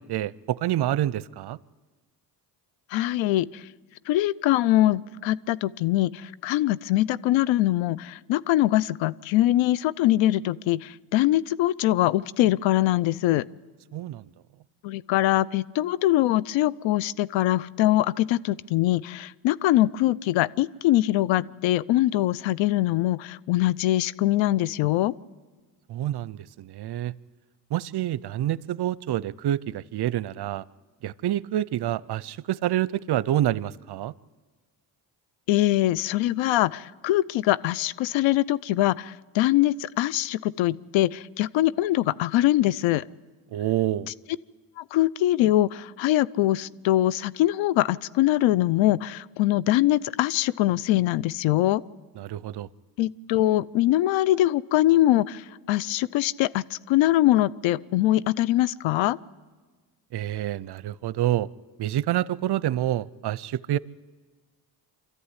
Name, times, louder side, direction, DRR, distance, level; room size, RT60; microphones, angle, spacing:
voice 1, 0.0-1.6 13.9-14.3 25.9-27.1 27.7-30.6 31.0-34.1 43.5-44.1 52.2-52.7 60.1-61.5 61.8-63.8, right 13 dB, 60° right, 21 dB, 0.7 m, -27 dB
voice 2, 2.9-3.6 4.1-13.4 14.8-25.1 35.5-43.0 44.8-51.8 53.0-59.2, left 15 dB, 80° left, 20 dB, 0.7 m, -23 dB
25.5 x 14.0 x 9.8 m, 1.4 s
supercardioid pair, 65°, 45 cm